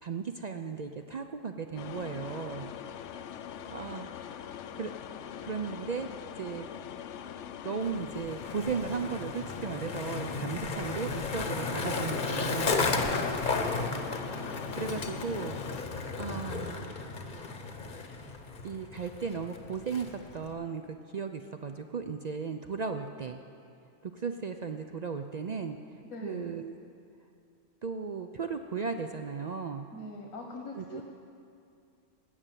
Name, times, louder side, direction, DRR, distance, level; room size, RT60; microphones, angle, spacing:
voice 1, 0.0-2.7 3.4-4.9 5.4-6.1 6.4-6.7 7.6-12.9 14.3-16.8 18.6-20.1 20.3-23.4 24.0-25.8 26.2-26.7 27.8-29.9 30.8-31.0, right 5 dB, 70° right, 7 dB, 0.4 m, -36 dB
sound 1, 1.8-15.8, left 9 dB, 70° left, 0.8 m, -42 dB
Skateboard, 7.8-20.5, left 3 dB, 40° left, 0.9 m, -34 dB
voice 2, 26.1-26.5 29.9-31.0, left 1 dB, 85° left, 1 dB, 1.6 m, -42 dB
16.0 x 6.7 x 9.0 m, 2.4 s
omnidirectional pair, 1.4 m